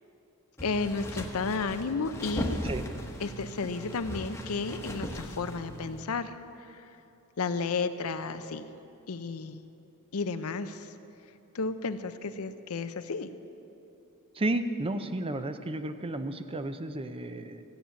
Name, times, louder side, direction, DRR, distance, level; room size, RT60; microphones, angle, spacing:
voice 1, 0.6-2.6 3.2-6.3 6.6-6.8 7.4-8.7 9.1-9.6 10.1-10.9 11.5-13.3, left 4 dB, 75° left, 11 dB, 0.6 m, -32 dB
sound 1, 0.6-6.0, equal, 10° left, 1.1 m, -37 dB
voice 2, 14.3-17.6, right 2 dB, 25° right, 9 dB, 0.6 m, -32 dB
14.5 x 8.9 x 7.0 m, 2.9 s
head